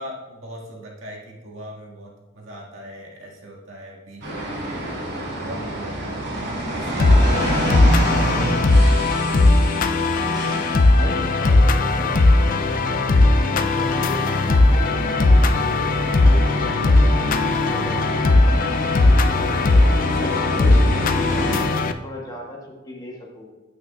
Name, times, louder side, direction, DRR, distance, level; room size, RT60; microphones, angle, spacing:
voice 1, 0.0-6.2 6.7-8.1 8.6-9.0 12.7-13.1 20.0-20.6, equal, 80° right, -2 dB, 1.8 m, -39 dB
sound 1, 4.2-21.6, right 1 dB, 60° right, 2.6 m, -28 dB
sound 2, 7.0-21.9, left 2 dB, 45° left, 0.4 m, -18 dB
voice 2, 10.3-12.1 13.1-19.5 20.1-23.5, left 1 dB, 20° left, -1 dB, 1.3 m, -38 dB
8.8 x 8.5 x 2.3 m, 1.2 s
head